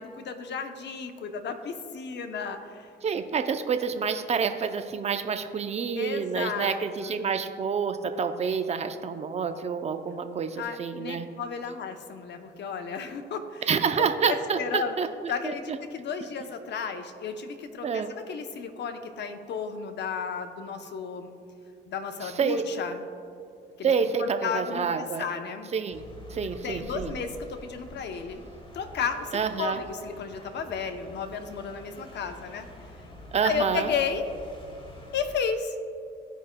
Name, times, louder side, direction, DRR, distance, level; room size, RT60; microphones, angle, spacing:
voice 1, 0.0-2.9 6.0-7.3 10.6-13.6 14.2-15.0 15.3-21.3 21.9-23.0 23.8-23.9 24.2-25.7 26.6-28.4 28.7-32.6 33.4-34.2 35.1-35.8, left 6 dB, 60° left, 6 dB, 0.8 m, -33 dB
voice 2, 3.0-11.3 13.7-15.8 17.8-18.1 22.2-22.6 23.8-25.3 25.7-26.0 26.3-27.1 29.3-29.8 33.3-33.9, right 6 dB, 35° right, 8 dB, 0.5 m, -28 dB
sound 1, 25.9-35.4, left 1 dB, 25° left, 1.1 m, -46 dB
14.5 x 5.0 x 2.2 m, 2.5 s
cardioid pair, 90°, 20 cm